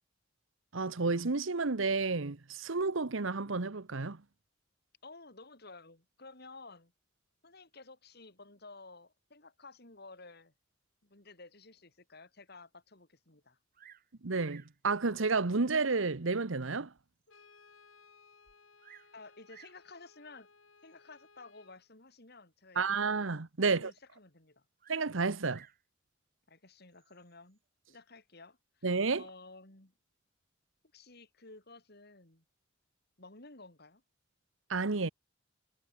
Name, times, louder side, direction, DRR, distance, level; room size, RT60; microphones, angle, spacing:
voice 1, 0.7-4.2 14.2-16.9 22.8-23.9 24.9-25.6 28.8-29.2 34.7-35.1, right 4 dB, 80° right, 1.1 m, -31 dB
voice 2, 5.0-6.9 7.4-10.5 11.0-13.6 19.1-20.5 20.8-23.0 23.6-24.6 26.5-27.6 27.9-28.8 29.2-29.9 30.9-32.4 33.2-34.0, left 3 dB, 55° left, 4.2 m, -53 dB
Bird vocalization bird call bird song, 13.7-14.1 14.4-14.8 15.7-15.8 16.4-16.5 17.0-17.1 17.3-17.4 18.5-19.2 19.5-19.8 20.8-21.2 24.8-25.8 26.9-27.4, right 9 dB, 45° right, 5.1 m, -58 dB
Brass instrument, 17.3-21.8, left 4 dB, 85° left, 5.1 m, -62 dB
head